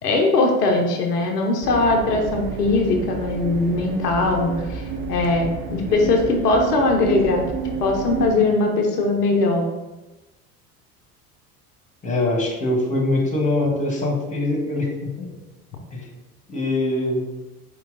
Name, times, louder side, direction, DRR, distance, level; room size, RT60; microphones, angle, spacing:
voice 1, 0.0-4.8 5.1-7.4 7.8-9.6, left 2 dB, 80° left, 1 dB, 0.8 m, -20 dB
sound 1, 1.6-8.3, right 5 dB, 45° right, 0.9 m, -30 dB
voice 2, 5.8-6.2 12.0-15.3 15.9-16.1 16.5-17.2, left 2 dB, 15° left, 0 dB, 1.3 m, -23 dB
4.6 x 3.0 x 3.8 m, 1.1 s
figure-of-eight pair, 65°, 46 cm